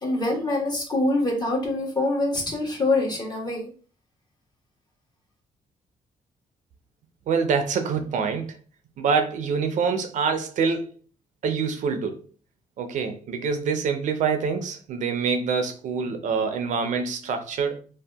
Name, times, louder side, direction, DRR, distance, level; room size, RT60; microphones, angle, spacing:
voice 1, 0.0-3.7, left 2 dB, 30° left, 1.1 m, -25 dB
voice 2, 7.3-8.6 9.0-10.9 11.4-12.3 12.8-17.8, right 5 dB, 65° right, 0.5 m, -25 dB
2.7 x 2.2 x 3.3 m
cardioid pair, 115°, 14 cm